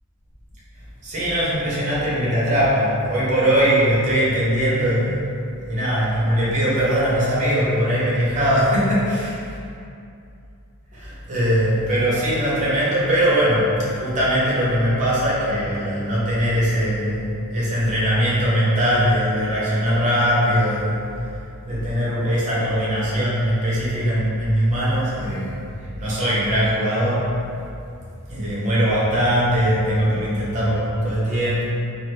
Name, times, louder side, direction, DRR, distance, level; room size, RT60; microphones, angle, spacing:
voice 1, 1.0-5.2 5.6-9.4 10.9-21.0 21.6-25.6 26.0-27.3 28.3-31.6, equal, 35° right, -8 dB, 1.0 m, -21 dB
3.8 x 2.2 x 3.1 m, 2.5 s
head